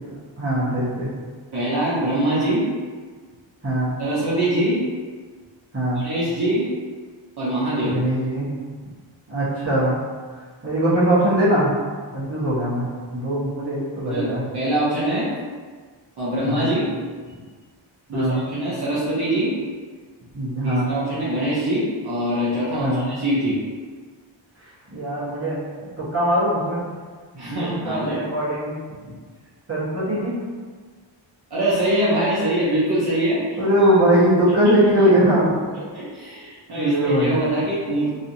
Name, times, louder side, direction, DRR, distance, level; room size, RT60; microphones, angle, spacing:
voice 1, 0.4-1.1 3.6-3.9 5.7-6.0 7.9-8.5 9.3-10.0 10.6-11.7 12.1-14.4 16.4-16.7 18.1-18.4 20.3-20.9 22.8-23.1 24.9-26.8 27.6-28.8 29.7-30.3 33.6-35.5 36.8-37.3, right 1 dB, 30° right, -9 dB, 1.2 m, -21 dB
voice 2, 1.5-2.6 4.0-4.8 5.9-6.7 7.4-8.0 14.1-15.3 16.2-16.9 17.2-17.4 18.1-19.5 20.6-23.6 27.3-28.2 31.5-33.6 34.6-34.9 35.9-38.1, right 1 dB, 55° right, -10 dB, 0.9 m, -23 dB
3.1 x 2.8 x 2.6 m, 1.5 s
wide cardioid pair, 120°, 47 cm